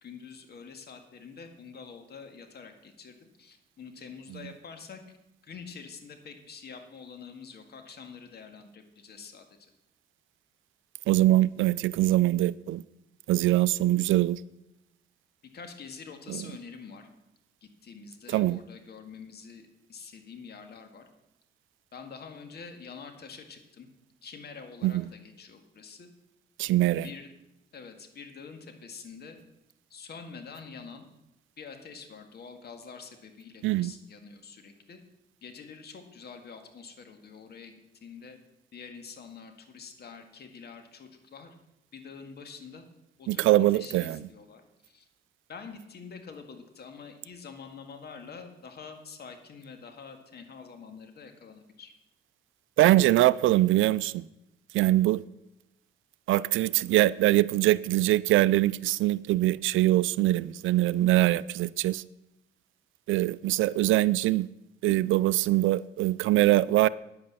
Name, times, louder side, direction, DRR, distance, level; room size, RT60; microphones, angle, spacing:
voice 1, 0.0-5.0 5.4-9.7 15.5-17.1 17.6-21.1 21.9-23.9 24.2-26.1 26.9-27.3 27.7-29.4 29.9-31.1 31.6-35.0 35.4-37.7 38.0-38.4 38.7-41.5 41.9-42.8 43.2-45.1 45.5-51.9, left 5 dB, 55° left, 1.9 m, -46 dB
voice 2, 11.1-12.8 13.3-14.4 16.3-16.4 18.3-18.6 24.8-25.0 26.6-27.1 33.6-33.9 43.3-44.2 52.8-54.2 54.7-55.2 56.3-62.0 63.1-64.5 64.8-66.9, right 16 dB, 80° right, 0.4 m, -23 dB
9.7 x 8.6 x 6.9 m
cardioid pair, 90°, 20 cm